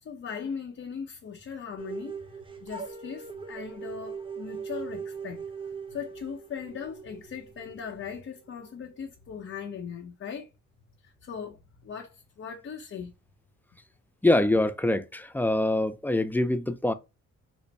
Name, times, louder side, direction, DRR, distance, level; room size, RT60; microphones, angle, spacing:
voice 1, 0.0-5.4 5.9-10.5 11.0-13.1, left 6 dB, 45° left, 0.8 m, -39 dB
sound 1, 1.8-8.7, right 6 dB, 15° right, 0.7 m, -40 dB
voice 2, 14.2-16.9, left 1 dB, 5° left, 0.3 m, -24 dB
4.0 x 2.1 x 3.2 m
cardioid pair, 90°, 30 cm